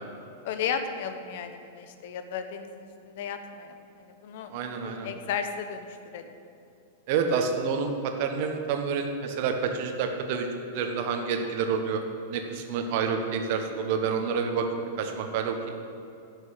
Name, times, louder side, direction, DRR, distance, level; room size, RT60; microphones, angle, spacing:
voice 1, 0.4-4.5 4.8-5.9 6.1-6.3, left 7 dB, 55° left, 8 dB, 1.0 m, -34 dB
voice 2, 4.5-5.1 7.1-12.0 12.3-15.5, right 5 dB, 50° right, 5 dB, 1.4 m, -28 dB
11.0 x 6.7 x 8.5 m, 2.7 s
figure-of-eight pair, 95°, 0 cm